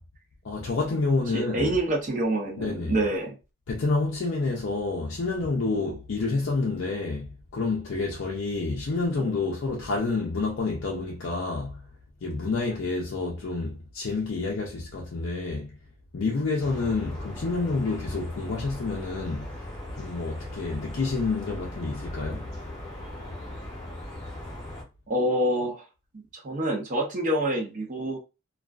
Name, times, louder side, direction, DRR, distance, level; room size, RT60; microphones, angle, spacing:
voice 1, 0.4-1.8 2.6-3.0 3.7-11.9 12.2-15.7 16.1-19.6 19.9-22.5, left 3 dB, 65° left, 0.5 m, -28 dB
voice 2, 1.3-3.4 9.2-9.4 25.1-25.8 26.1-28.2, right 1 dB, 35° right, 0.5 m, -27 dB
sound 1, 16.6-24.8, left 1 dB, 15° left, 0.7 m, -38 dB
2.4 x 2.3 x 2.3 m
head